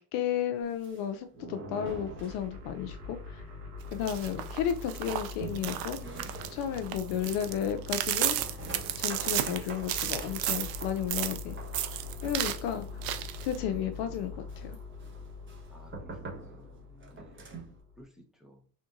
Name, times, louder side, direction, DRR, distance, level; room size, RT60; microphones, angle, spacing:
voice 1, 0.1-3.4 3.9-6.0 6.5-8.4 9.0-11.6 12.2-12.9 13.4-14.7, left 9 dB, 55° left, 8 dB, 0.5 m, -33 dB
sound 1, 0.6-2.9 3.2-3.3 3.6-3.7 4.2-17.8, right 3 dB, 25° right, 1.2 m, -46 dB
sound 2, 1.9-18.0, left 4 dB, 70° right, 1.0 m, -44 dB
sound 3, 3.9-11.4 11.7-12.6 13.0-13.6, right 13 dB, 50° right, 0.5 m, -33 dB
voice 2, 15.7-16.8 17.1-17.5 18.0-18.6, equal, ahead, 1 dB, 0.8 m, -55 dB
3.5 x 2.6 x 2.6 m, 0.41 s
hypercardioid pair, 75°, 47 cm